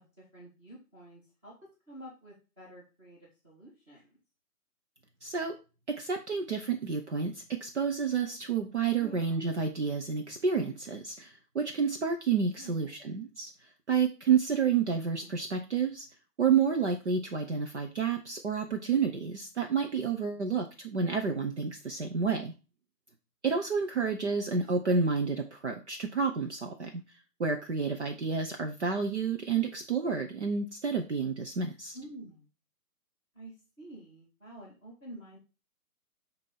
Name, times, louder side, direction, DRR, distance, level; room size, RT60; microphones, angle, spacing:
voice 1, 0.0-4.2 8.9-9.4 12.6-12.9 15.2-15.3 31.9-32.5 33.3-35.4, right 1 dB, 10° right, -11 dB, 1.9 m, -49 dB
voice 2, 5.2-5.5 5.9-13.5 13.9-16.1 16.4-22.5 23.4-27.0 27.4-32.0, right 5 dB, 45° right, 3 dB, 0.9 m, -30 dB
8.1 x 3.0 x 5.5 m, 0.33 s
hypercardioid pair, 175°, 47 cm